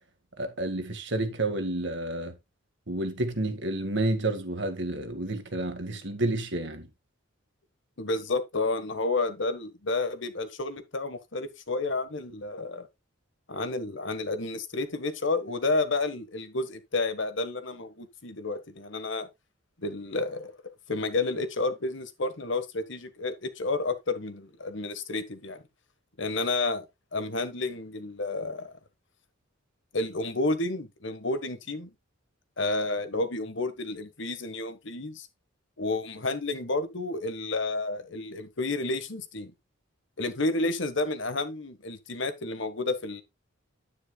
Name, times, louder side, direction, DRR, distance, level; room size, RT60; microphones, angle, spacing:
voice 1, 0.4-2.4 2.9-6.9, right 2 dB, 55° right, 1.8 m, -30 dB
voice 2, 8.0-12.9 13.5-19.3 19.8-20.5 20.9-25.6 26.2-26.9 27.1-28.7 29.9-31.9 32.6-35.3 35.8-39.5 40.2-43.2, left 3 dB, 60° left, 1.4 m, -30 dB
9.9 x 9.7 x 2.3 m
head